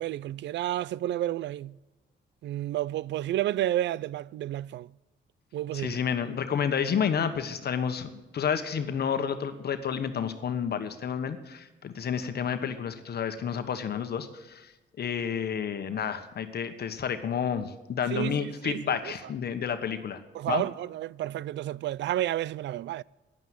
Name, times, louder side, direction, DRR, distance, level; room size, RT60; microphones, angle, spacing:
voice 1, 0.0-1.7 2.4-4.9 5.5-6.0 18.1-19.0 20.3-23.0, right 13 dB, 65° right, 0.4 m, -31 dB
voice 2, 5.7-8.1 8.3-14.7 15.0-20.2 20.5-20.6, left 7 dB, 55° left, 1.3 m, -30 dB
10.5 x 9.3 x 8.0 m
cardioid pair, 90°, 20 cm